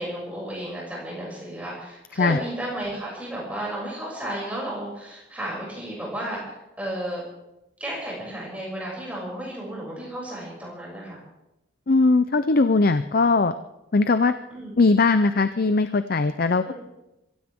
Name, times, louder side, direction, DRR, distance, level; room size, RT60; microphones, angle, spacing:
voice 1, 0.0-7.2 7.8-11.2 14.5-14.7 16.6-16.7, right 1 dB, 5° right, -4 dB, 6.8 m, -33 dB
voice 2, 11.9-13.5 13.9-14.3 14.8-16.7, left 3 dB, 45° left, 11 dB, 0.5 m, -20 dB
24.5 x 15.5 x 3.6 m, 0.92 s
head